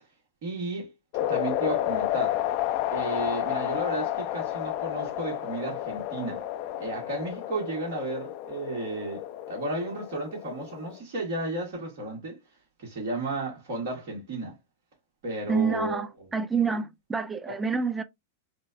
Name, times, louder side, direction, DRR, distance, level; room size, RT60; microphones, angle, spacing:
voice 1, 0.4-0.9 1.3-2.4 2.9-6.4 6.8-9.2 9.5-12.4 12.8-14.5 15.2-16.0 17.5-17.6, right 2 dB, 50° right, 1.6 m, -33 dB
sound 1, 1.1-11.0, left 13 dB, 50° left, 0.6 m, -31 dB
voice 2, 15.5-18.0, right 5 dB, 15° right, 0.4 m, -27 dB
4.2 x 2.2 x 2.6 m
figure-of-eight pair, 95°, 0 cm